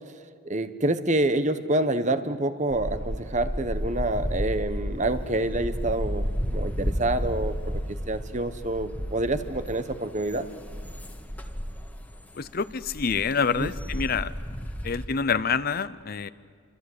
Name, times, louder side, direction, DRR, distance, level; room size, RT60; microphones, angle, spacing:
voice 1, 0.4-7.5 8.1-10.5 10.8-10.9 13.6-13.7, right 1 dB, 35° right, 11 dB, 1.2 m, -27 dB
sound 1, 2.7-15.1, equal, 10° left, 1.6 m, -32 dB
voice 2, 12.4-14.3 14.8-16.3, left 5 dB, 50° left, 15 dB, 0.7 m, -27 dB
27.5 x 26.0 x 8.2 m, 2.2 s
head